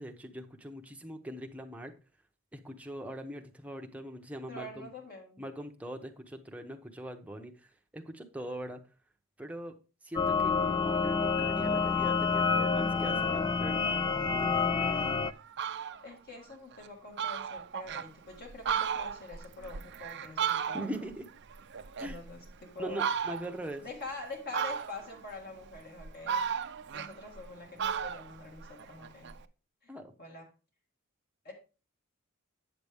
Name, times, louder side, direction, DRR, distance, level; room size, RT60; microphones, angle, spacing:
voice 1, 0.0-1.9 2.5-4.9 5.4-7.7 7.9-8.8 9.4-9.7 10.0-13.8 14.3-14.6 20.7-21.2 22.0-22.2 22.8-23.8 29.9-30.1, right 1 dB, 5° right, 3 dB, 0.8 m, -41 dB
voice 2, 4.5-5.4 16.0-20.9 22.0-23.0 23.8-26.4 26.9-29.3 29.8-29.9 30.2-30.5 31.4-31.5, left 3 dB, 45° left, 0 dB, 1.7 m, -45 dB
sound 1, 10.2-15.3, left 5 dB, 20° left, 0.3 m, -28 dB
Fowl, 14.9-15.0 15.4-16.0 16.5-16.6 16.9-17.0 17.2-18.1 18.5-21.1 21.5-22.5 22.9-23.6 24.5-25.2 25.7-27.5 27.8-29.4, right 7 dB, 55° right, 0.5 m, -34 dB
8.7 x 6.8 x 3.4 m, 0.33 s
head